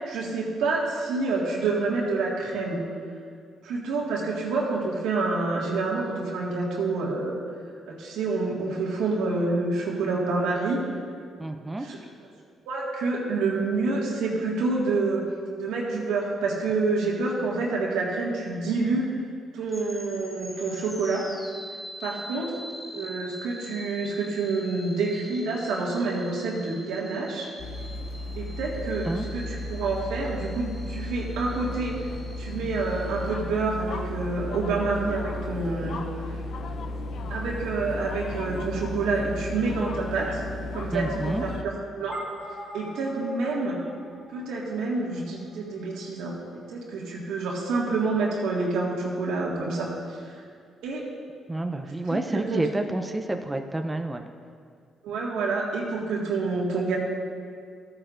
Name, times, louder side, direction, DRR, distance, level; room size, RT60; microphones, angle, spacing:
voice 1, 0.1-2.8 3.6-7.3 7.9-10.8 11.9-12.0 12.7-15.2 15.6-19.1 19.5-21.2 22.0-22.6 22.9-27.5 28.4-29.1 29.3-31.9 32.4-36.0 36.3-36.4 37.3-40.4 40.7-42.2 42.7-43.8 44.3-50.4 50.8-51.0 51.8-52.6 55.0-57.0, right 3 dB, 90° right, -3 dB, 1.8 m, -28 dB
voice 2, 11.4-11.9 29.0-29.3 40.9-41.5 51.5-54.2, right 2 dB, 15° right, 5 dB, 0.5 m, -29 dB
sound 1, 19.7-33.3, equal, 10° left, 1.5 m, -45 dB
sound 2, 27.6-41.6, left 2 dB, 65° left, 0.5 m, -34 dB
sound 3, 42.1-46.7, equal, 50° left, 2.1 m, -44 dB
13.5 x 8.9 x 2.5 m, 2.2 s
cardioid pair, 90°, 0 cm